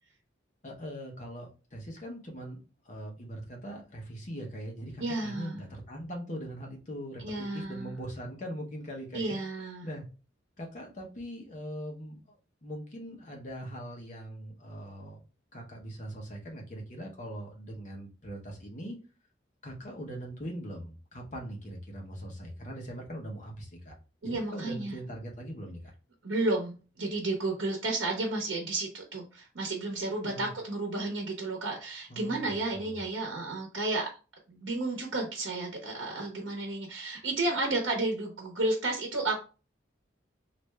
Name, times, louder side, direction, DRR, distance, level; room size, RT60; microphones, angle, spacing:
voice 1, 0.6-2.6 2.8-9.4 9.8-10.0 10.6-15.2 15.5-19.0 19.6-23.9 24.2-25.8 30.2-30.5 32.1-33.0, equal, 40° left, 0 dB, 0.9 m, -41 dB
voice 2, 5.0-5.6 7.2-8.0 9.1-9.9 24.2-25.0 26.2-34.1 34.5-39.4, right 2 dB, 85° right, 1 dB, 0.8 m, -32 dB
3.3 x 2.5 x 3.2 m, 0.34 s
head